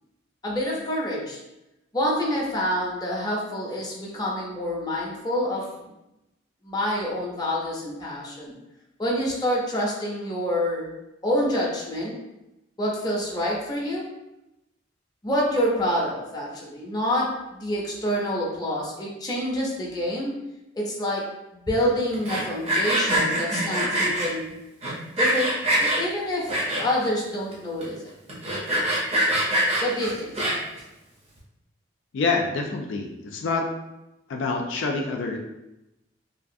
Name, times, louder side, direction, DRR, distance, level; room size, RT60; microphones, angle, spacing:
voice 1, 0.4-1.4 1.9-5.9 6.6-8.5 9.0-10.9 11.2-12.2 12.8-14.1 15.2-20.4 20.7-21.3 21.5-24.5 25.2-25.5 25.8-26.5 26.8-28.1 29.8-30.4, equal, 20° left, -4 dB, 0.5 m, -27 dB
Sawing, 22.1-24.3 24.8-26.0 26.5-27.1 27.5-27.6 27.8-27.9 28.3-30.8, right 1 dB, 35° right, 0.6 m, -24 dB
voice 2, 32.1-33.7 34.3-35.4, left 3 dB, 85° left, 2 dB, 0.4 m, -26 dB
2.7 x 2.3 x 2.6 m, 0.92 s
head